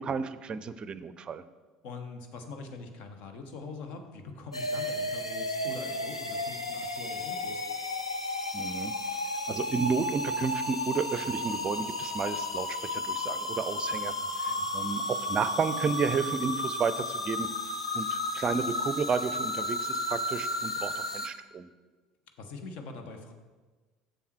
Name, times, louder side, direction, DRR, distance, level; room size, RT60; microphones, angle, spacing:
voice 1, 0.0-1.4 8.5-8.9 9.5-17.5 17.9-21.7, right 5 dB, 30° right, 14 dB, 0.5 m, -32 dB
voice 2, 1.8-7.7 14.2-14.7 22.4-23.3, left 3 dB, 55° left, 6 dB, 1.1 m, -43 dB
sound 1, 4.5-21.3, left 1 dB, 90° left, 0.5 m, -33 dB
7.2 x 7.1 x 4.4 m, 1.3 s
figure-of-eight pair, 65°, 3 cm